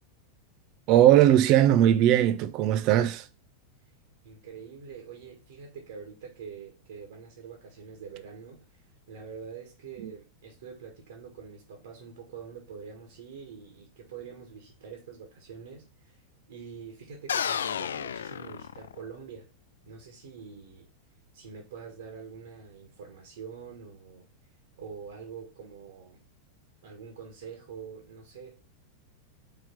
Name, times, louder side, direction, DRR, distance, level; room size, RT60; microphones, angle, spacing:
voice 1, 0.9-3.2 10.0-10.1, right 12 dB, 40° right, 0.6 m, -19 dB
voice 2, 4.2-16.2 16.5-19.5 19.9-20.9 21.3-24.3 24.8-26.2 26.8-28.6, right 6 dB, 60° right, 1.8 m, -45 dB
sound 1, 17.3-19.2, left 8 dB, 65° left, 0.3 m, -32 dB
4.9 x 4.4 x 6.0 m
figure-of-eight pair, 90°, 0 cm